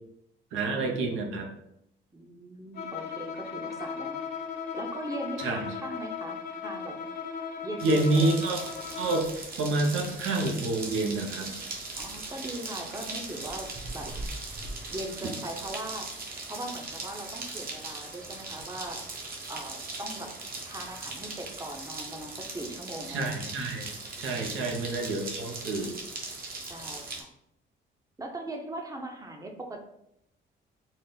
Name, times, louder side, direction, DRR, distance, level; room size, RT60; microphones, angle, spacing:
voice 1, 0.5-1.5 5.4-5.7 7.8-8.6 9.0-9.3 9.6-11.5 15.2-15.3 23.1-23.9 24.2-25.9, right 2 dB, 85° right, 2 dB, 0.8 m, -28 dB
voice 2, 2.1-4.2 4.7-7.0 7.6-8.5 12.0-13.7 13.9-14.1 14.9-16.1 16.5-19.0 19.5-20.3 20.6-23.3 24.6-24.7 26.7-27.3 28.2-29.8, right 1 dB, 15° right, 3 dB, 0.7 m, -39 dB
Bowed string instrument, 2.7-9.4, left 6 dB, 55° left, 0.6 m, -37 dB
sound 1, 7.8-27.2, right 3 dB, 50° right, 0.9 m, -39 dB
4.0 x 2.0 x 3.8 m, 0.79 s
cardioid pair, 90°, 20 cm